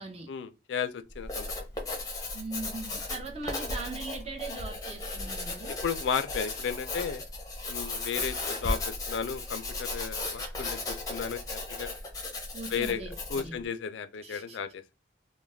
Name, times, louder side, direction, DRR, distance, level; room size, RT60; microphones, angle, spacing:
voice 1, 0.3-1.5 5.8-7.2 7.7-11.9 12.7-14.9, left 7 dB, 70° left, 0.3 m, -34 dB
Writing, 1.1-13.6, left 2 dB, 20° left, 0.6 m, -36 dB
voice 2, 2.3-5.8 12.5-13.6 14.2-14.6, right 3 dB, 35° right, 0.6 m, -40 dB
2.3 x 2.1 x 3.2 m
head